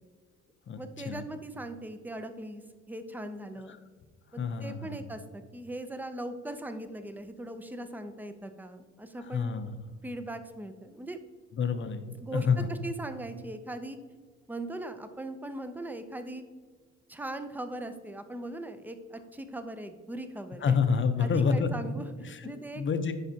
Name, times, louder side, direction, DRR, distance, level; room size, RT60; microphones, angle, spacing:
voice 1, 0.8-2.6 2.9-3.8 4.3-9.5 10.0-11.2 12.2-14.0 14.5-16.4 17.1-20.8 21.2-22.8, right 1 dB, 5° right, 9 dB, 0.5 m, -39 dB
voice 2, 4.4-5.0 9.3-9.8 11.5-12.7 20.6-21.7 22.2-23.1, left 5 dB, 40° left, 8 dB, 0.7 m, -28 dB
10.5 x 4.9 x 2.8 m, 1.5 s
cardioid pair, 90°, 30 cm